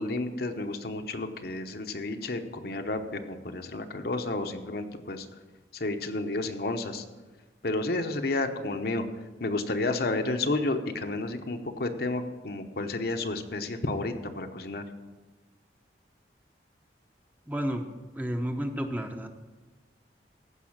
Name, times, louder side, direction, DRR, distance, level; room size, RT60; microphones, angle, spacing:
voice 1, 0.0-5.3 5.7-7.1 7.6-9.0 9.4-14.8, left 2 dB, 55° left, 6 dB, 0.9 m, -31 dB
voice 2, 17.5-17.8 18.1-19.3, equal, 10° right, 5 dB, 0.7 m, -31 dB
15.0 x 5.5 x 7.3 m, 1.2 s
head